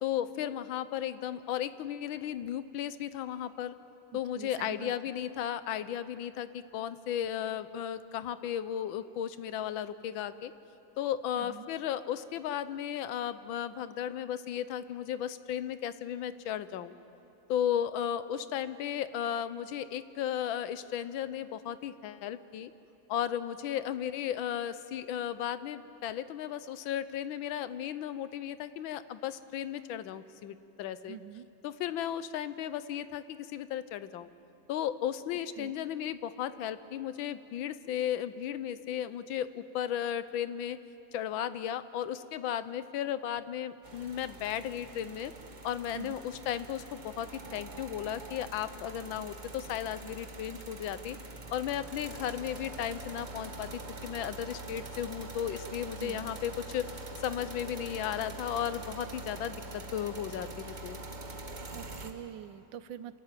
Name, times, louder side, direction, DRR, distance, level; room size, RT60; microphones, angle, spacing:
voice 1, 0.0-3.7 4.1-10.5 11.0-16.9 17.5-22.7 23.1-31.2 31.6-34.3 34.7-40.8 41.1-45.3 45.6-51.2 51.5-53.7 54.0-56.9 57.2-61.0, left 10 dB, 75° left, 13 dB, 1.4 m, -35 dB
voice 2, 4.3-4.9 11.4-11.7 31.1-31.5 35.6-35.7 45.9-46.2 56.0-56.3 61.7-63.2, right 10 dB, 75° right, 14 dB, 1.3 m, -44 dB
sound 1, 43.8-62.1, right 2 dB, 30° right, 1.1 m, -44 dB
27.5 x 13.5 x 9.1 m, 2.8 s
omnidirectional pair, 2.2 m